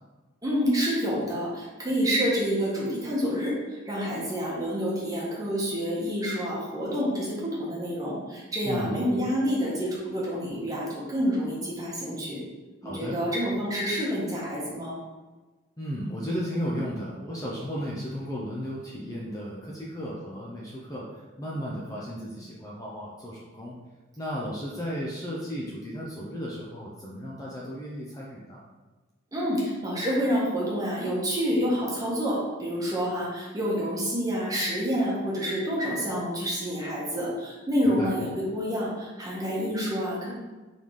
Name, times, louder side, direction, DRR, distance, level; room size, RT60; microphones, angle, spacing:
voice 1, 0.4-12.4 12.8-15.0 29.3-40.3, equal, 20° right, -6 dB, 1.1 m, -28 dB
voice 2, 8.6-9.0 12.8-13.2 15.8-23.8 24.2-28.6 37.8-38.1, equal, 20° left, -5 dB, 0.5 m, -34 dB
3.9 x 3.6 x 3.1 m, 1.2 s
head